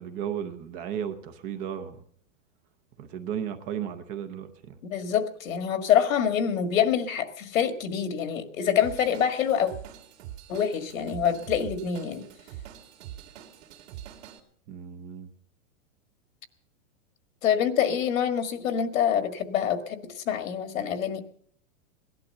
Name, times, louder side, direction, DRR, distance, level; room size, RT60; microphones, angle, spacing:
voice 1, 0.0-2.0 3.0-4.8 14.7-15.3, right 9 dB, 20° right, 9 dB, 0.6 m, -34 dB
voice 2, 4.8-9.7 10.5-12.2 17.4-21.2, left 8 dB, 85° left, 9 dB, 1.9 m, -26 dB
Drum kit / Drum, 8.8-14.4, right 11 dB, 55° right, 2.4 m, -44 dB
17.0 x 11.5 x 6.6 m, 0.63 s
supercardioid pair, 165°, 39 cm